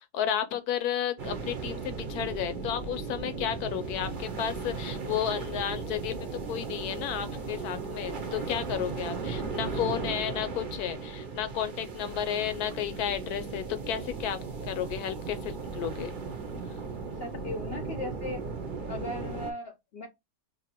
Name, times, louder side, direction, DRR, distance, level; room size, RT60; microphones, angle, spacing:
voice 1, 0.1-6.1 6.5-14.4 14.6-16.1, left 9 dB, 75° left, 1.1 m, -32 dB
sound 1, 1.2-19.5, right 4 dB, 45° right, 0.7 m, -36 dB
voice 2, 17.2-18.4 18.9-20.1, left 2 dB, 55° left, 0.7 m, -37 dB
2.8 x 2.6 x 4.2 m
omnidirectional pair, 1.7 m